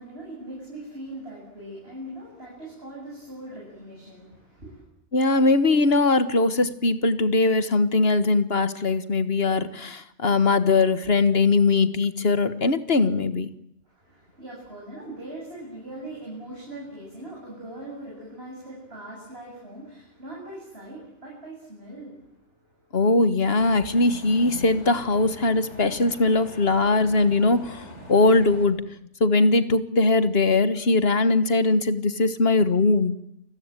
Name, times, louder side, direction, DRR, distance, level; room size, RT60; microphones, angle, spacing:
voice 1, 0.0-4.8 13.8-23.0, right 1 dB, 60° right, -3 dB, 8.3 m, -41 dB
voice 2, 5.1-13.5 22.9-28.8 29.2-33.1, left 3 dB, 60° left, 12 dB, 1.7 m, -21 dB
sound 1, 23.6-28.7, left 1 dB, 85° left, 6.5 m, -43 dB
29.5 x 20.5 x 9.1 m, 0.76 s
omnidirectional pair, 1.2 m